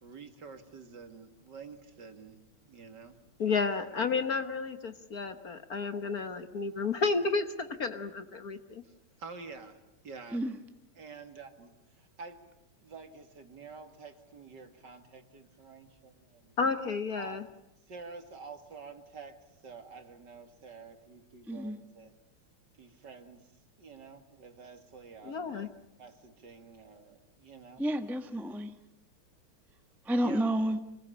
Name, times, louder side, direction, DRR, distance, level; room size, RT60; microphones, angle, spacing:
voice 1, 0.0-3.2 3.5-3.6 8.8-8.9 9.2-10.4 10.9-11.7 12.0-12.4 12.8-16.5 17.2-17.5 17.9-22.1 22.8-23.4 23.8-25.7 26.0-27.8 30.2-30.4, right 4 dB, 55° right, 7 dB, 2.6 m, -49 dB
voice 2, 3.4-8.8 16.6-17.4 25.2-25.7, left 4 dB, 50° left, 9 dB, 1.5 m, -31 dB
voice 3, 27.8-28.7 30.1-30.8, right 1 dB, ahead, 7 dB, 1.1 m, -30 dB
26.0 x 21.0 x 9.9 m, 0.87 s
omnidirectional pair, 2.3 m